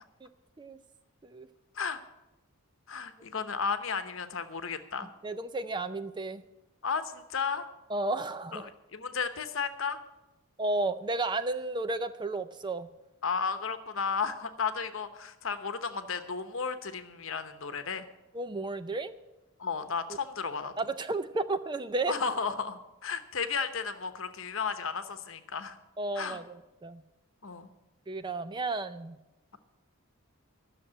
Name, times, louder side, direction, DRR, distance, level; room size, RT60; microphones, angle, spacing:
voice 1, 2.9-5.1 6.8-7.7 8.5-10.0 13.2-18.1 19.6-20.7 22.1-25.8 26.1-26.4 27.4-27.7, left 5 dB, 60° left, 10 dB, 0.9 m, -33 dB
voice 2, 5.2-6.4 7.9-8.7 10.6-12.9 18.3-19.1 20.8-22.1 26.0-27.0 28.1-29.2, right 2 dB, 20° right, 11 dB, 0.4 m, -33 dB
12.5 x 6.7 x 8.7 m, 0.98 s
head